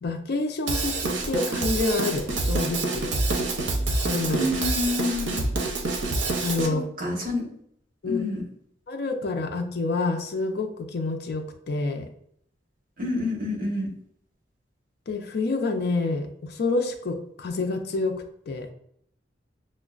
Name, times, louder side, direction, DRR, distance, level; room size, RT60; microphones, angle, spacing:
voice 1, 0.0-3.0 4.0-4.4 6.4-6.8 8.0-8.2 8.9-12.1 15.1-18.7, left 3 dB, 60° left, 5 dB, 0.5 m, -28 dB
Drum kit / Drum, 0.7-6.7, right 2 dB, 80° right, 0.6 m, -27 dB
voice 2, 4.3-5.5 6.7-7.5 8.1-8.4 13.0-13.9, left 2 dB, 50° right, -1 dB, 1.0 m, -28 dB
6.0 x 2.1 x 2.4 m, 0.69 s
head